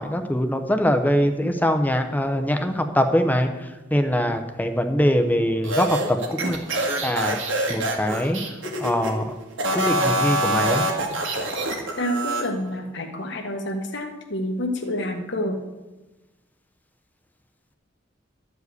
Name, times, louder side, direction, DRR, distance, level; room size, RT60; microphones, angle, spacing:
voice 1, 0.0-6.6 7.0-7.4 7.7-9.2 9.7-10.9, equal, 10° left, 7 dB, 0.8 m, -23 dB
sound 1, 5.6-9.1 9.5-12.4, right 1 dB, 80° right, 1.9 m, -25 dB
voice 2, 12.0-15.6, left 1 dB, 65° left, 4 dB, 1.4 m, -28 dB
12.0 x 4.9 x 8.1 m, 1.1 s
head